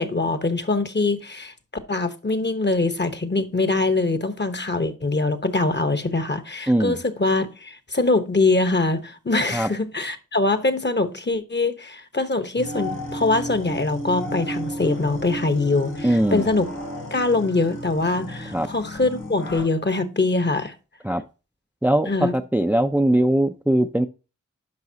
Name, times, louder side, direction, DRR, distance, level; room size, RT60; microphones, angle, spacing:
voice 1, 0.0-1.5 1.9-16.7 17.1-20.7 22.1-22.3, left 3 dB, 35° left, 1.1 m, -23 dB
voice 2, 6.7-7.0 9.5-9.7 16.0-16.5 18.5-18.7 21.0-21.2 21.8-24.1, right 1 dB, 5° right, 0.5 m, -20 dB
sound 1, 12.6-19.6, equal, 80° left, 3.6 m, -33 dB
10.5 x 5.4 x 2.8 m
cardioid pair, 40°, 31 cm